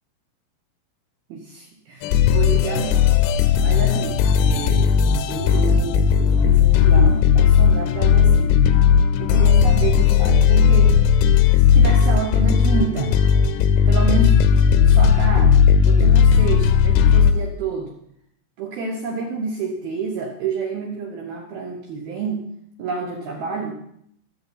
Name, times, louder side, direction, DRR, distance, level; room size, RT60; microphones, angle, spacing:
voice 1, 1.3-3.1 3.6-5.0 5.3-8.8 9.2-11.0 11.6-13.2 13.9-14.4 14.8-17.9 18.6-22.5 22.8-23.8, right 5 dB, 75° right, 1 dB, 2.2 m, -29 dB
sound 1, 2.0-17.3, left 7 dB, 85° left, 3.3 m, -16 dB
23.5 x 7.8 x 4.0 m, 0.70 s
omnidirectional pair, 6.0 m